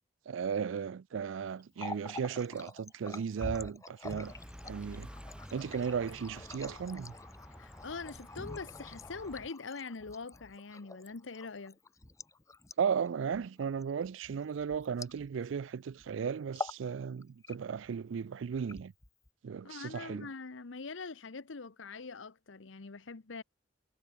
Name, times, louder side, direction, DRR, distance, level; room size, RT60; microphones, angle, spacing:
voice 1, 0.3-4.3 4.6-5.1 5.5-7.1 12.8-18.9 19.4-20.3, right 6 dB, 85° right, 0.4 m, -35 dB
Water tap faucet, 1.6-15.6 15.9-16.1 16.4-16.9 17.2-17.9 18.5-19.3, left 2 dB, 15° left, 0.7 m, -46 dB
sound 1, 4.2-9.5, equal, 5° right, 3.3 m, -51 dB
voice 2, 7.6-11.8 19.6-23.4, left 4 dB, 85° left, 0.9 m, -43 dB
head